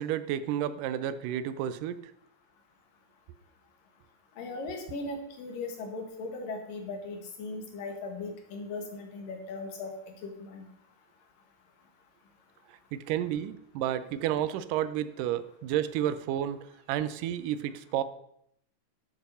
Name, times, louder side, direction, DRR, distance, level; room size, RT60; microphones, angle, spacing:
voice 1, 0.0-2.1 12.7-18.0, right 11 dB, 85° right, 14 dB, 2.3 m, -31 dB
voice 2, 4.4-10.7, left 3 dB, 90° left, 3 dB, 3.5 m, -38 dB
11.5 x 7.4 x 5.5 m, 0.73 s
omnidirectional pair, 3.7 m